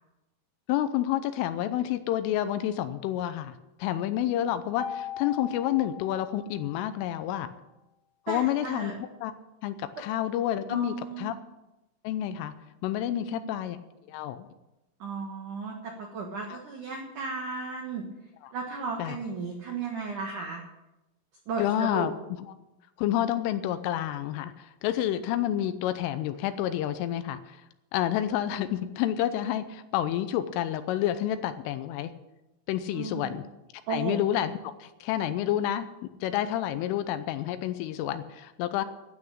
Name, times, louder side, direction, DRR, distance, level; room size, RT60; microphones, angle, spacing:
voice 1, 0.7-7.5 8.3-8.9 9.2-9.3 9.6-11.3 12.0-12.5 12.8-13.8 14.1-14.5 16.5-16.6 18.4-18.5 19.0-19.2 21.6-22.4 23.0-27.4 27.9-32.1 32.7-33.4 33.9-38.9, left 12 dB, 80° left, 11 dB, 3.1 m, -29 dB
Mallet percussion, 4.8-7.0, left 9 dB, 65° left, 3.6 m, -39 dB
voice 2, 8.3-9.0 10.7-11.4 13.1-13.5 15.0-18.0 18.5-20.6 21.5-22.1 32.9-33.4 33.9-34.2, right 4 dB, 75° right, 1 dB, 1.8 m, -35 dB
12.5 x 8.5 x 8.7 m, 0.98 s
omnidirectional pair, 6.0 m